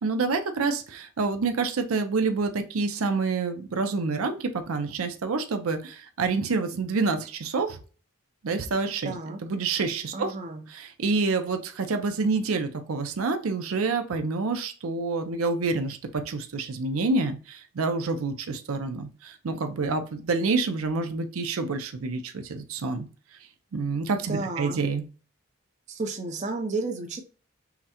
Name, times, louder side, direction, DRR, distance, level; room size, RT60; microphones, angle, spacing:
voice 1, 0.0-7.8 8.4-9.1 9.4-10.3 10.7-23.1 23.7-25.0, right 4 dB, 90° right, 7 dB, 0.5 m, -27 dB
voice 2, 9.0-9.4 10.1-10.6 24.3-24.8 25.9-27.2, right 3 dB, 35° right, 4 dB, 0.6 m, -32 dB
5.7 x 2.1 x 2.8 m, 0.36 s
head